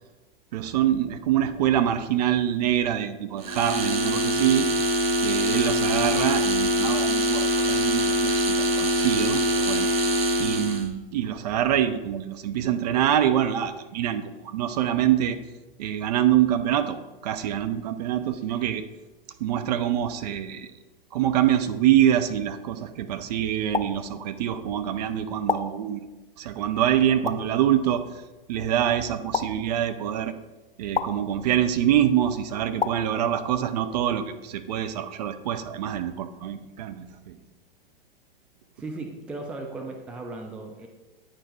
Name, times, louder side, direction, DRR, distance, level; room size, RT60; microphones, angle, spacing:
voice 1, 0.5-4.7 5.2-9.9 10.4-15.4 15.8-18.9 19.4-20.7 21.1-26.0 26.4-28.0 28.5-30.3 30.8-37.4, right 10 dB, 45° right, 10 dB, 0.6 m, -25 dB
sound 1, 3.4-10.9, equal, 75° right, 1.0 m, -23 dB
sound 2, 23.7-23.9 25.5-25.6 27.2-27.4 29.3-29.5 30.9-31.1 32.8-32.9, left 5 dB, 80° left, 0.6 m, -25 dB
voice 2, 38.8-40.9, right 2 dB, 5° right, 3 dB, 0.4 m, -36 dB
8.8 x 4.3 x 4.4 m, 1.1 s
figure-of-eight pair, 105°, 30 cm